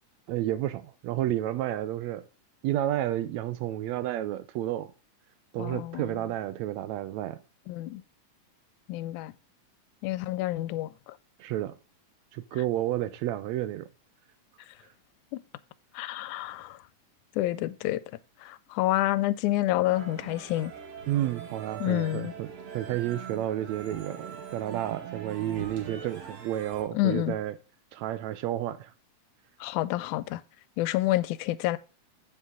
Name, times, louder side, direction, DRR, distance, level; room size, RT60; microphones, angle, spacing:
voice 1, 0.3-2.2 2.6-4.9 5.5-7.4 11.4-11.7 12.3-13.9 21.1-27.6 27.9-28.9, right 13 dB, 80° right, 1.7 m, -31 dB
voice 2, 5.6-6.1 7.7-8.0 8.9-9.3 10.0-10.9 15.3-15.4 16.0-16.8 17.4-18.0 18.4-20.7 21.8-22.3 26.9-27.4 29.6-30.4 30.8-31.8, left 16 dB, 85° left, 2.0 m, -28 dB
sound 1, 19.9-26.8, right 7 dB, 60° right, 3.0 m, -42 dB
8.0 x 7.4 x 3.7 m
omnidirectional pair, 3.5 m